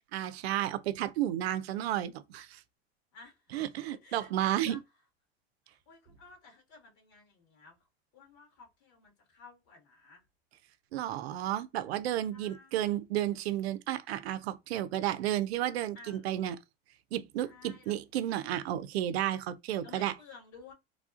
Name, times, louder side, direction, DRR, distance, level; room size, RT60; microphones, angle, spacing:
voice 1, 0.1-2.6 3.5-4.8 10.9-16.6 17.1-20.1, right 12 dB, 80° right, 0.5 m, -32 dB
voice 2, 3.1-4.8 5.7-7.8 8.1-10.2 12.3-12.9 15.9-16.3 17.4-17.9 19.8-20.7, left 4 dB, 60° left, 1.9 m, -54 dB
3.3 x 2.4 x 2.4 m
hypercardioid pair, 100°, 31 cm